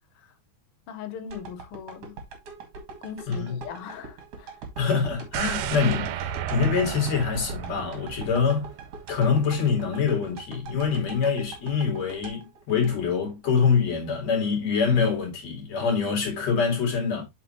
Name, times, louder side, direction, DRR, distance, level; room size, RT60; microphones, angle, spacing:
voice 1, 0.9-2.2 3.0-4.6, left 8 dB, 80° left, 1.3 m, -39 dB
sound 1, 1.3-13.5 13.9-14.0, right 4 dB, 50° right, 2.5 m, -42 dB
voice 2, 3.3-3.6 4.8-8.7 9.1-17.2, left 6 dB, 50° left, 3.6 m, -25 dB
sound 2, 5.3-9.3 9.7-9.8, right 10 dB, 90° right, 2.4 m, -33 dB
7.9 x 5.7 x 3.0 m
omnidirectional pair, 4.0 m